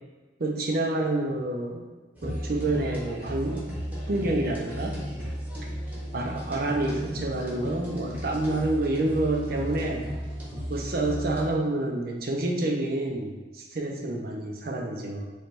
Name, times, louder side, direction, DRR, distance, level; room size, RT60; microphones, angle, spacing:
voice 1, 0.4-1.8 2.2-3.7 4.1-5.0 6.1-10.0 10.7-15.2, right 2 dB, 50° right, 1 dB, 0.6 m, -28 dB
sound 1, 2.2-11.5, equal, 10° right, 0.9 m, -35 dB
3.2 x 3.1 x 4.4 m, 1.3 s
head